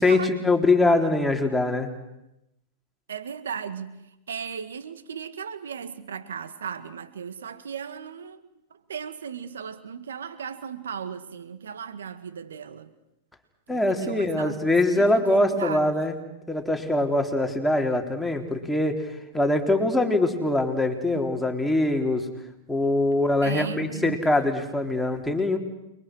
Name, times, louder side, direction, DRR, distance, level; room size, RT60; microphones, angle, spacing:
voice 1, 0.0-1.9 13.7-16.2 16.5-22.2 22.7-25.6, left 2 dB, 5° left, 4.0 m, -23 dB
voice 2, 3.1-12.9 13.7-14.6 14.9-15.9 21.1-21.3 23.4-24.3, right 7 dB, 85° right, 1.8 m, -36 dB
29.5 x 23.5 x 6.4 m
hypercardioid pair, 110°, 0 cm